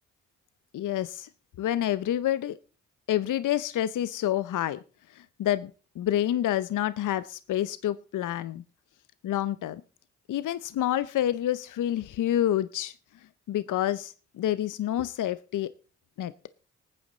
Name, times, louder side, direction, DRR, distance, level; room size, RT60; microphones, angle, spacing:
voice 1, 0.7-1.3 1.6-2.6 3.1-4.8 5.1-5.7 6.0-8.6 9.2-9.8 10.3-12.9 13.5-15.7 16.2-16.3, left 12 dB, 65° left, 15 dB, 0.7 m, -28 dB
19.5 x 9.3 x 3.9 m, 0.38 s
hypercardioid pair, 40°, 33 cm